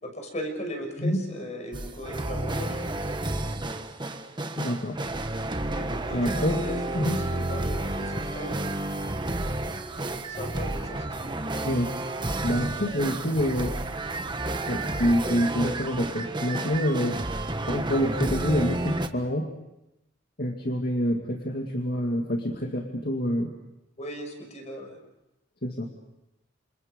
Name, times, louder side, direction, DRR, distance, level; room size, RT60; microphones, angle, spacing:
voice 1, 0.0-2.8 5.7-6.8 7.1-8.6 10.3-11.4 24.0-25.0, equal, 40° left, 4 dB, 6.0 m, -37 dB
sound 1, 1.7-19.1, right 2 dB, 25° right, 1.4 m, -31 dB
voice 2, 4.6-5.0 6.1-6.6 6.9-7.2 11.6-11.9 12.4-13.8 14.7-17.2 17.7-19.5 20.4-23.5 25.6-25.9, equal, 55° left, 3 dB, 2.1 m, -27 dB
29.0 x 27.5 x 5.3 m, 0.89 s
head